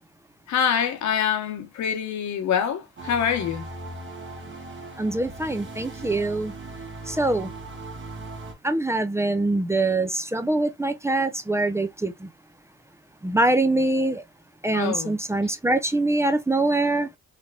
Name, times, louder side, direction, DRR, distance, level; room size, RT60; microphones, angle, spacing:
voice 1, 0.5-3.7 14.7-15.1, left 8 dB, 65° left, 1.0 m, -25 dB
sound 1, 3.0-8.5, right 2 dB, 40° right, 1.3 m, -38 dB
voice 2, 5.0-6.5 7.1-7.5 8.6-12.3 13.2-14.2 14.6-17.1, right 2 dB, 10° right, 0.4 m, -24 dB
3.3 x 2.8 x 2.3 m
cardioid pair, 90°, 30 cm